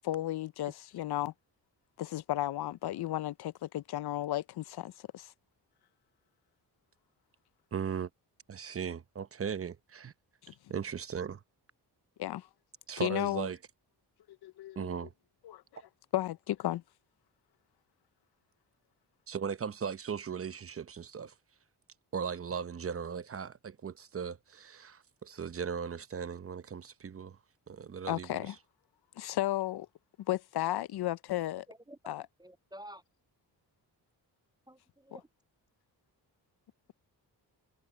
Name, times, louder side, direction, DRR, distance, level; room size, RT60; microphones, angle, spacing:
voice 1, 0.0-1.3 2.0-5.3 10.4-10.5 12.2-12.5 13.0-13.5 14.4-14.9 15.4-15.6 16.1-16.8 28.1-28.5 29.2-29.9 30.3-31.6 32.1-32.2, left 14 dB, 65° left, 0.7 m, -34 dB
voice 2, 7.7-8.1 8.5-10.1 10.7-11.4 12.9-13.6 14.8-15.1 19.3-21.3 22.1-27.4 27.7-28.6, right 7 dB, 35° right, 0.8 m, -38 dB
voice 3, 31.7-33.0 34.7-35.3, right 1 dB, 10° right, 0.4 m, -51 dB
cardioid pair, 75°, 41 cm